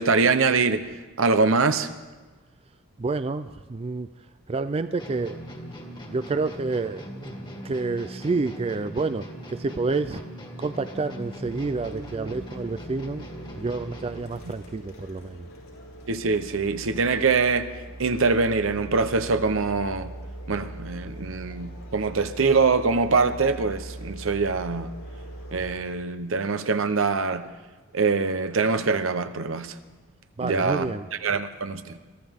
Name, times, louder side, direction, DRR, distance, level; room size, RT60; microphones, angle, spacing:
voice 1, 0.0-1.9 16.1-20.1 20.5-24.9 25.5-27.5 27.9-29.8 30.4-30.9 31.2-32.0, right 4 dB, 70° right, 0.9 m, -24 dB
voice 2, 3.0-4.1 4.5-5.4 6.1-7.3 7.6-10.2 10.6-13.3 13.6-15.5 30.4-31.1, right 3 dB, 30° right, 0.4 m, -29 dB
sound 1, 5.0-14.4, equal, 25° left, 1.8 m, -40 dB
sound 2, 11.4-25.7, right 1 dB, 85° left, 5.1 m, -41 dB
23.0 x 15.0 x 3.6 m
head